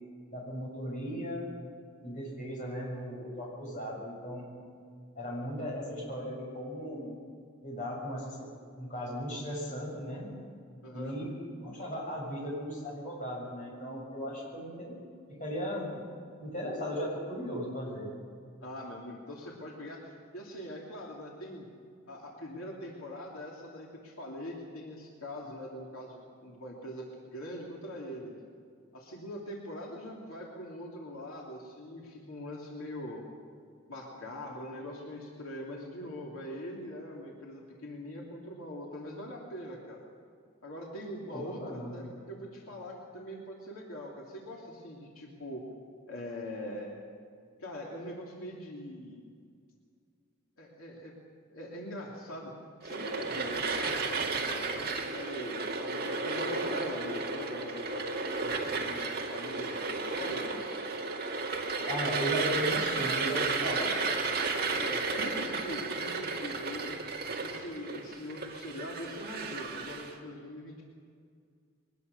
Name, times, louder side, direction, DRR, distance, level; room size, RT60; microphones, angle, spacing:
voice 1, 0.3-1.5 2.0-4.5 5.2-7.2 7.6-8.4 8.8-10.3 10.9-11.3 11.6-15.0 15.3-16.1 16.4-18.1 41.3-41.9 61.8-64.1, equal, 35° left, -3 dB, 7.3 m, -36 dB
voice 2, 10.8-11.1 18.6-21.7 22.1-28.3 28.9-33.2 33.9-40.0 40.6-45.6 46.1-46.9 47.6-49.3 50.6-51.1 51.5-52.5 52.8-60.6 64.8-67.0 67.4-70.8, equal, 85° left, -2 dB, 3.0 m, -42 dB
sound 1, 52.8-70.1, right 4 dB, 45° right, 2.3 m, -33 dB
22.5 x 19.5 x 6.8 m, 2.2 s
head